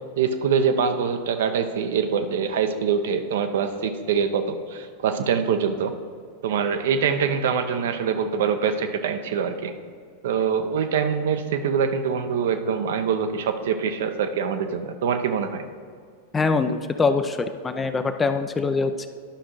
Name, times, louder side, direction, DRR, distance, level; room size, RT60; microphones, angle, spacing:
voice 1, 0.2-5.9 6.4-9.7 10.2-15.6, right 6 dB, 55° right, 8 dB, 0.5 m, -24 dB
voice 2, 16.3-19.1, left 4 dB, 15° left, 9 dB, 0.4 m, -23 dB
11.5 x 6.2 x 3.0 m, 2.1 s
figure-of-eight pair, 90°, 0 cm